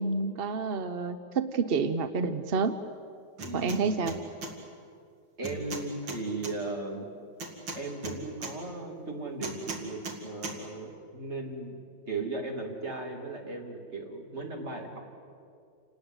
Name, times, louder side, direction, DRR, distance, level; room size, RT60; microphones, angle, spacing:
voice 1, 0.0-2.8 3.5-4.1, right 4 dB, 55° right, 10 dB, 0.7 m, -29 dB
voice 2, 3.4-4.1 5.4-7.1 7.7-11.7 12.0-15.0, right 3 dB, 35° right, 1 dB, 3.1 m, -37 dB
sound 1, 3.4-3.8 4.1-4.5 5.4-6.5 7.4-8.5 9.4-10.2 10.4-10.6, right 2 dB, 85° right, 3.3 m, -37 dB
28.5 x 19.5 x 7.9 m, 2.3 s
omnidirectional pair, 2.0 m